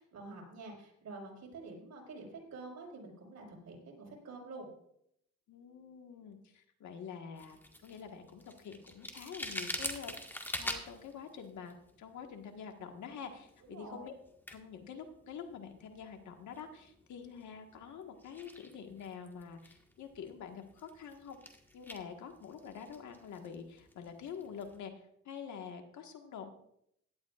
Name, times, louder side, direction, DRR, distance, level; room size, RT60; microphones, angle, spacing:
voice 1, 0.0-4.7 13.7-14.1, right 3 dB, 65° right, -1 dB, 5.1 m, -48 dB
voice 2, 5.5-14.1 14.5-21.4 21.7-26.5, left 7 dB, 70° left, 5 dB, 1.6 m, -47 dB
sound 1, 7.4-24.8, equal, 5° left, 1.7 m, -47 dB
16.5 x 11.5 x 2.5 m, 0.73 s
cardioid pair, 90°, 30 cm